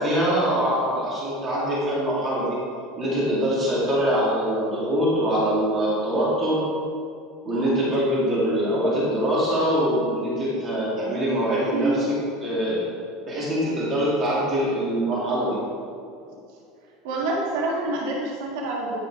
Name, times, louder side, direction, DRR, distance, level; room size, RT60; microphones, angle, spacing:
voice 1, 0.0-2.6 3.0-6.7 7.4-12.8 13.3-15.6, equal, 25° right, -7 dB, 2.4 m, -23 dB
voice 2, 11.7-12.0 16.3-16.6 17.0-19.0, right 2 dB, 70° right, -3 dB, 1.8 m, -27 dB
10.5 x 6.3 x 4.8 m, 2.3 s
cardioid pair, 170°, 0 cm